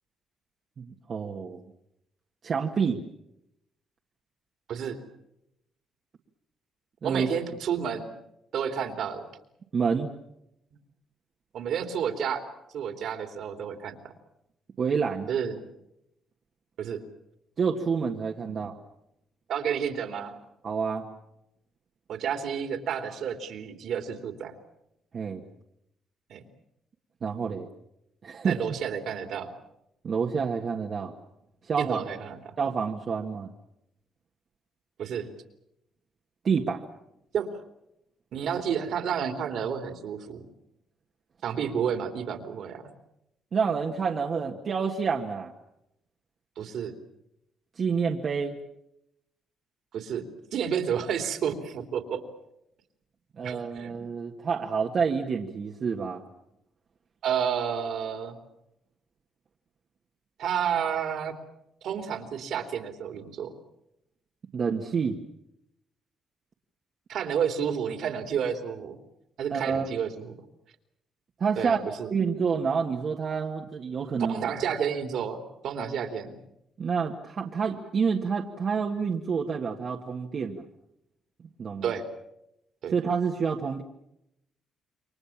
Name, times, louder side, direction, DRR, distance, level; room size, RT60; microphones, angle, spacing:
voice 1, 0.8-1.6 2.4-3.0 7.0-7.3 9.7-10.1 14.8-15.3 17.6-18.8 20.6-21.0 25.1-25.4 27.2-27.7 28.2-28.6 30.0-31.1 31.6-32.0 32.6-33.5 36.4-36.8 43.5-45.5 47.8-48.6 53.4-56.2 64.5-65.2 69.5-69.9 71.4-74.4 76.8-80.6 81.6-81.9 82.9-83.8, right 5 dB, 50° right, 1 dB, 1.8 m, -28 dB
voice 2, 4.7-5.0 7.0-8.1 8.5-9.3 11.5-12.4 12.7-14.1 15.3-15.6 16.8-17.0 19.5-20.4 22.1-24.5 26.3-26.4 28.4-29.5 31.8-32.4 35.0-35.3 37.3-37.5 38.3-40.5 41.4-42.9 46.6-46.9 49.9-50.3 50.5-52.2 53.4-53.9 57.2-58.4 60.4-61.4 61.8-63.5 67.1-69.0 69.4-70.4 71.6-72.1 74.3-76.4 81.8-82.1 82.8-82.9, right 8 dB, 70° right, 7 dB, 3.3 m, -30 dB
28.5 x 23.5 x 7.3 m, 0.82 s
cardioid pair, 90°, 0 cm